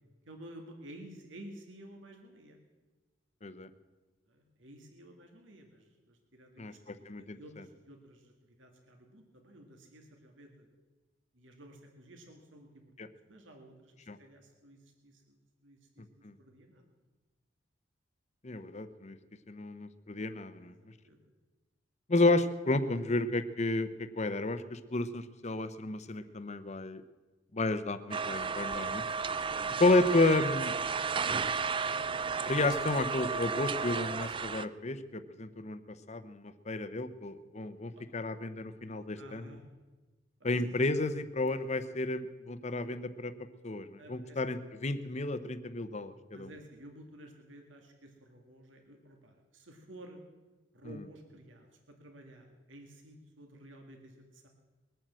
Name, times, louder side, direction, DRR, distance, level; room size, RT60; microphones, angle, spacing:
voice 1, 0.3-2.6 4.3-10.7 11.3-13.9 14.2-16.8 20.6-21.2 26.1-26.4 29.3-29.8 31.8-32.1 37.9-38.0 39.2-39.6 40.5-40.6 44.0-44.4 46.3-50.2 50.7-54.5, right 1 dB, 80° right, 3 dB, 2.1 m, -53 dB
voice 2, 6.6-7.4 13.0-13.1 14.1-14.2 16.2-16.3 18.4-19.2 19.5-20.7 22.1-23.9 24.2-27.0 27.5-29.0 29.8-30.7 32.5-39.4 40.4-43.3 43.6-46.5, left 2 dB, 35° left, 11 dB, 0.8 m, -31 dB
sound 1, 28.1-34.7, right 5 dB, 25° right, 0.4 m, -33 dB
21.0 x 9.1 x 7.6 m, 1.3 s
head